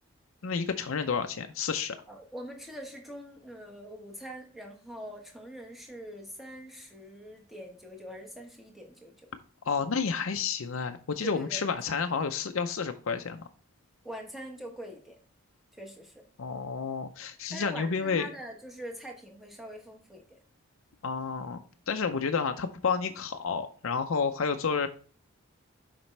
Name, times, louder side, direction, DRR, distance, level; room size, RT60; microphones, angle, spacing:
voice 1, 0.4-2.0 9.6-13.4 16.4-18.3 21.0-24.9, left 5 dB, 70° left, 6 dB, 0.5 m, -30 dB
voice 2, 2.1-9.1 11.2-11.8 14.0-15.2 15.7-16.2 17.5-20.4, equal, ahead, 1 dB, 1.2 m, -43 dB
7.1 x 5.1 x 3.2 m, 0.40 s
head